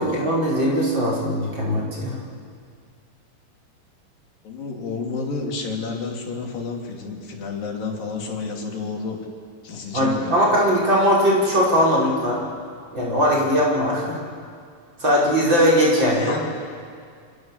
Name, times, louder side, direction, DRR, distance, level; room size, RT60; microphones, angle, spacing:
voice 1, 0.0-2.2 9.9-12.4 12.9-14.2 15.0-16.3, equal, 30° right, -4 dB, 5.9 m, -20 dB
voice 2, 4.4-9.2 9.6-10.5 16.1-16.4, left 4 dB, 80° left, 0 dB, 4.8 m, -30 dB
29.0 x 26.0 x 7.4 m, 2.2 s
omnidirectional pair, 3.9 m